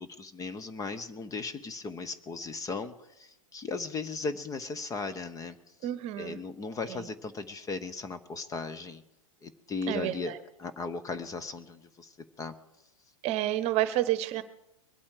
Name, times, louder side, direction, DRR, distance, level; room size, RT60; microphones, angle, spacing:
voice 1, 0.0-5.6 6.2-9.0 9.4-10.3 10.6-12.5, left 4 dB, 20° left, 11 dB, 0.9 m, -37 dB
voice 2, 5.8-6.4 6.9-7.0 9.9-10.4 13.2-14.4, right 14 dB, 35° right, 13 dB, 1.1 m, -29 dB
22.5 x 8.6 x 4.9 m, 0.84 s
hypercardioid pair, 105°, 18 cm